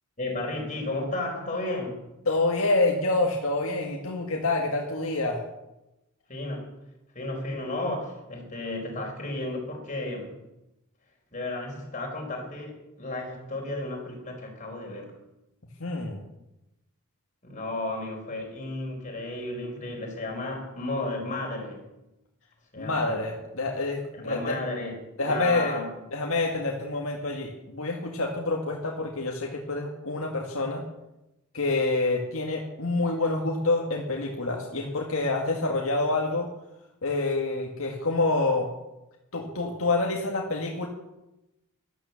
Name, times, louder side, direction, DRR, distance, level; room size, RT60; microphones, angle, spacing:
voice 1, 0.2-2.0 6.3-6.7 7.1-10.3 11.3-15.1 17.4-21.8 22.7-23.3 24.1-25.8, left 2 dB, 35° left, 0 dB, 4.6 m, -33 dB
voice 2, 2.3-5.4 15.8-16.2 22.8-24.6 25.2-25.8 26.1-30.8 31.5-36.5 37.0-38.7 39.3-40.9, left 2 dB, 70° left, 0 dB, 2.0 m, -27 dB
13.0 x 12.0 x 7.2 m, 0.93 s
head